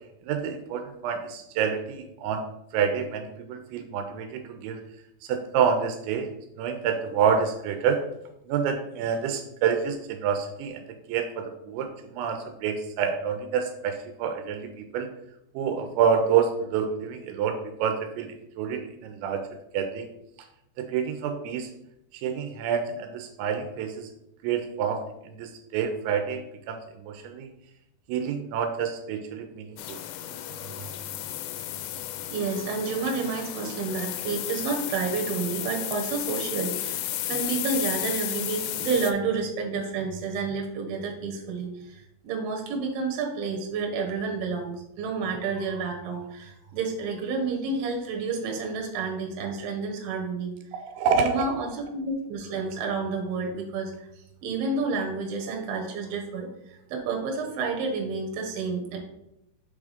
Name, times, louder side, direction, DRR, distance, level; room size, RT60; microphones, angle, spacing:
voice 1, 0.2-2.4 2.7-4.8 5.3-6.3 6.6-8.0 8.5-10.8 11.1-15.1 15.6-18.3 18.6-19.5 19.7-20.1 20.8-21.7 22.1-24.1 24.4-26.4 26.7-27.5 28.1-30.0 50.7-51.4, right 7 dB, 85° right, 6 dB, 2.9 m, -28 dB
sound 1, 29.8-39.1, left 12 dB, 85° left, 2.7 m, -33 dB
voice 2, 32.3-50.5 51.1-53.9 54.4-59.0, right 4 dB, 65° right, 1 dB, 2.7 m, -30 dB
6.8 x 3.6 x 4.9 m, 0.83 s
omnidirectional pair, 5.2 m